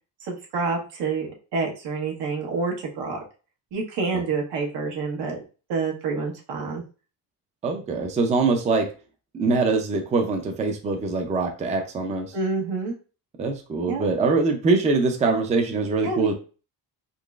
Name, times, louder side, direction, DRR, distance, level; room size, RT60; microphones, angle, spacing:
voice 1, 0.2-3.2 3.7-5.4 5.7-6.8 12.3-12.9 13.9-14.1 16.0-16.3, right 4 dB, 85° right, -1 dB, 1.2 m, -28 dB
voice 2, 7.6-8.9 9.3-12.3 13.4-16.3, right 3 dB, 20° right, 3 dB, 0.4 m, -23 dB
3.8 x 3.0 x 2.4 m, 0.35 s
cardioid pair, 170°, 39 cm